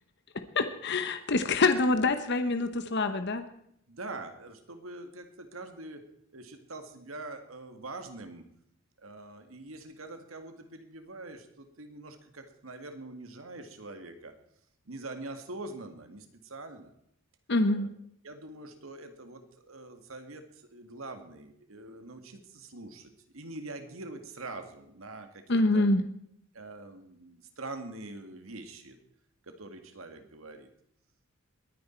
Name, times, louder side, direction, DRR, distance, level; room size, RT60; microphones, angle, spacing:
voice 1, 0.5-3.4 17.5-17.9 25.5-26.0, left 2 dB, 55° left, 9 dB, 1.0 m, -26 dB
voice 2, 3.9-6.0 6.3-8.5 9.0-14.3 14.9-16.9 17.7-17.9 18.2-25.9 26.5-29.0 29.4-30.7, right 2 dB, 85° right, 7 dB, 2.0 m, -44 dB
21.5 x 9.9 x 4.5 m, 0.70 s
head